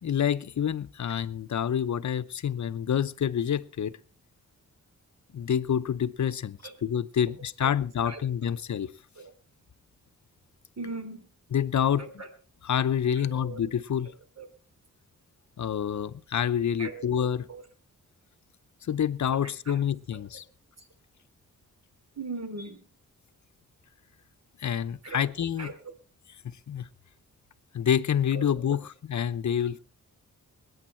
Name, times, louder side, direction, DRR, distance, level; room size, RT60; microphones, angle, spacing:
voice 1, 0.0-3.9 5.3-8.9 11.5-12.1 12.6-14.1 15.6-17.5 18.9-20.4 24.6-25.7 26.7-26.9 27.7-29.8, left 9 dB, 60° left, 0.8 m, -27 dB
voice 2, 7.4-7.7 8.0-8.2 9.2-9.3 10.8-11.2 12.0-12.3 13.1-13.6 14.4-14.5 16.8-17.2 17.5-17.6 19.3-19.8 20.1-20.2 20.8-20.9 22.2-22.8 25.0-25.3 25.6-25.7 28.3-28.8 29.6-29.7, right 3 dB, 50° right, 3.2 m, -40 dB
20.5 x 9.4 x 4.4 m
wide cardioid pair, 80°, 32 cm